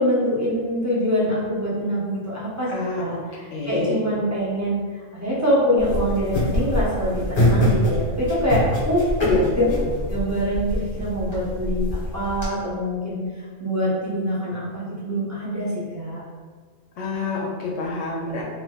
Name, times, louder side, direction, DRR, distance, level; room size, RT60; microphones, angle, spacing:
voice 1, 0.0-2.7 3.0-9.0 9.5-9.6 10.1-13.2 13.6-16.2, equal, 25° right, -9 dB, 0.4 m, -24 dB
voice 2, 2.7-3.2 3.5-4.0 9.2-9.9 17.0-18.4, left 2 dB, 70° left, -2 dB, 0.9 m, -26 dB
sound 1, 5.8-12.4, equal, 30° left, 1.0 m, -24 dB
3.3 x 2.7 x 2.2 m, 1.5 s
omnidirectional pair, 1.4 m